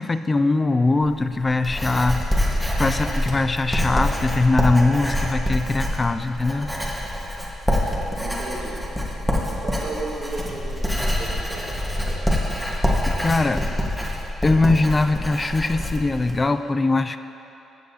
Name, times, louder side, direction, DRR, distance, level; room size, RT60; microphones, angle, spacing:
voice 1, 0.0-2.2 2.8-6.7 13.1-13.6 14.4-17.2, left 3 dB, 25° left, 10 dB, 0.4 m, -21 dB
Writing, 1.0-16.4, left 1 dB, 5° left, 1.4 m, -25 dB
voice 2, 8.2-8.8 9.6-12.3, right 2 dB, 65° right, -9 dB, 1.7 m, -35 dB
14.5 x 7.6 x 2.8 m, 2.8 s
cardioid pair, 90°, 0 cm